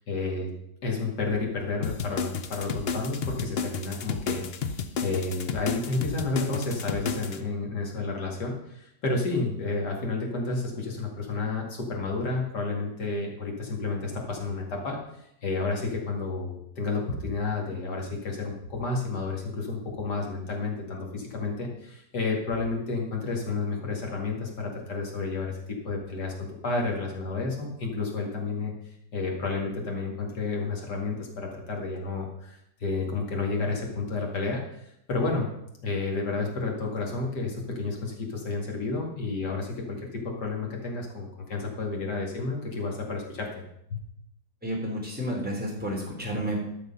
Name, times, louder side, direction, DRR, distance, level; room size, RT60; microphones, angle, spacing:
voice 1, 0.1-0.5 0.8-25.6 25.8-26.3 26.6-28.7 29.1-35.5 35.8-43.6 43.9-44.0, left 3 dB, 80° left, 0 dB, 2.7 m, -31 dB
sound 1, 1.8-7.4, left 6 dB, 55° left, 0.7 m, -32 dB
voice 2, 44.6-46.6, equal, 5° right, -3 dB, 3.0 m, -31 dB
12.0 x 6.4 x 5.5 m, 0.78 s
omnidirectional pair, 1.8 m